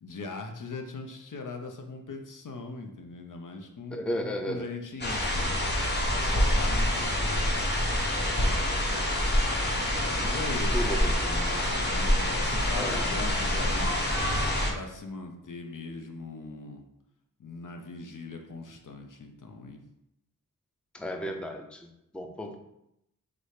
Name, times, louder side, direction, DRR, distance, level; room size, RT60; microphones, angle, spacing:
voice 1, 0.0-5.6 6.1-7.6 8.4-9.1 9.7-11.2 11.7-13.9 14.7-16.8 17.4-19.8 22.5-22.6, left 3 dB, 65° left, 3 dB, 0.7 m, -40 dB
voice 2, 3.9-4.7 10.7-11.6 12.8-13.2 20.9-22.6, equal, 5° left, 4 dB, 0.5 m, -34 dB
sound 1, 5.0-14.7, left 1 dB, 30° left, 0.9 m, -26 dB
4.1 x 3.2 x 3.2 m, 0.81 s
wide cardioid pair, 60°, 34 cm